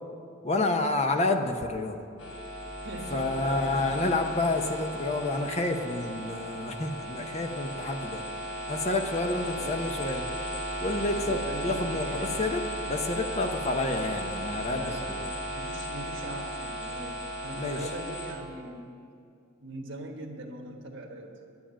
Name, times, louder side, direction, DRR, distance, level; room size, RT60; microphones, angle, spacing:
voice 1, 0.4-2.0 3.1-8.2 8.7-10.3 10.8-15.3 17.5-17.9, left 2 dB, 35° left, 5 dB, 0.8 m, -29 dB
sound 1, 2.2-18.3, equal, 75° left, 3.3 m, -36 dB
voice 2, 2.8-3.7 9.4-9.8 11.2-12.3 14.7-18.9 19.6-21.4, right 2 dB, 70° right, -1 dB, 1.3 m, -41 dB
10.0 x 9.8 x 8.8 m, 2.4 s
head